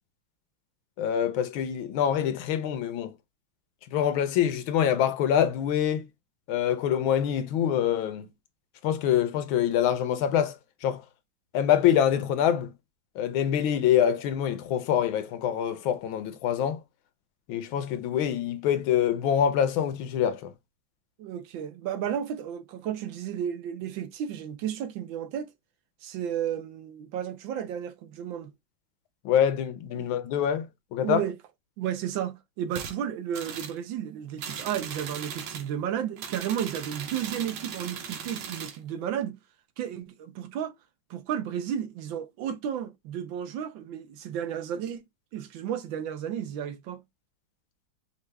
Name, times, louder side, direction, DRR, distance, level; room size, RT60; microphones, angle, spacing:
voice 1, 1.0-3.1 3.9-6.1 6.5-8.3 8.8-10.5 10.8-11.0 11.5-12.7 13.2-16.8 17.5-20.5 29.2-31.2, left 9 dB, 80° left, 1.4 m, -25 dB
voice 2, 21.2-25.5 26.0-28.5 29.9-30.1 31.0-31.4 31.8-39.4 39.8-40.8 41.1-45.0 45.3-47.0, right 9 dB, 75° right, 1.4 m, -33 dB
sound 1, 32.7-33.0 33.3-33.8 34.4-35.7 36.2-38.8, right 7 dB, 90° right, 1.8 m, -38 dB
5.7 x 2.4 x 3.2 m
omnidirectional pair, 2.2 m